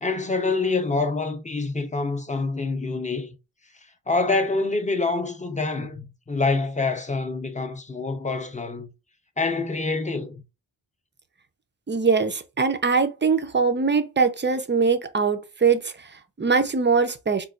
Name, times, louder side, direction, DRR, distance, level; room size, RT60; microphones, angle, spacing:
voice 1, 0.0-3.3 4.1-8.9 9.4-10.4, left 3 dB, 15° left, 0.6 m, -26 dB
voice 2, 11.9-17.5, right 5 dB, 25° right, 0.4 m, -22 dB
4.1 x 2.3 x 2.3 m
wide cardioid pair, 70°, 47 cm